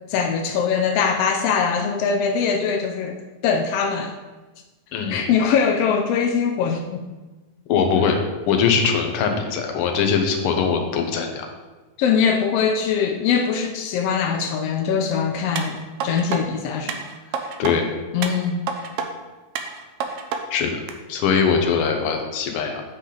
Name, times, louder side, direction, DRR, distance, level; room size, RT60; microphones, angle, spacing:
voice 1, 0.1-3.2 3.4-4.2 5.1-7.0 12.0-15.8 16.0-17.0 18.1-18.6, left 6 dB, 90° left, 4 dB, 1.3 m, -22 dB
voice 2, 7.7-8.2 8.5-11.5 17.6-17.9 20.5-20.8 21.1-22.8, left 6 dB, 65° left, 3 dB, 1.4 m, -21 dB
sound 1, 15.6-16.4 16.9-17.7 18.2-19.1 19.6-20.4 20.9-21.0, right 6 dB, 80° right, 1.4 m, -29 dB
8.4 x 6.0 x 3.8 m, 1.2 s
omnidirectional pair, 3.4 m